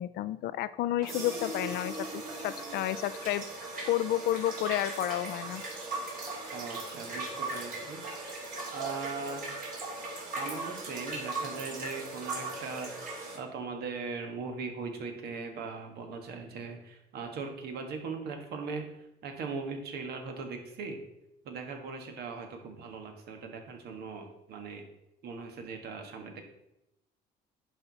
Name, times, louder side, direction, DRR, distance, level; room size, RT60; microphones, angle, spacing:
voice 1, 0.0-2.1 2.4-5.6, left 13 dB, 70° left, 15 dB, 0.4 m, -31 dB
sound 1, 1.0-13.4, right 2 dB, 55° right, 3.0 m, -38 dB
voice 2, 6.5-8.0 8.7-9.5 10.4-12.9 13.3-21.0 21.4-24.9 25.2-26.4, right 4 dB, 70° right, 4 dB, 1.6 m, -39 dB
11.0 x 4.6 x 4.1 m, 0.87 s
cardioid pair, 110°, 17 cm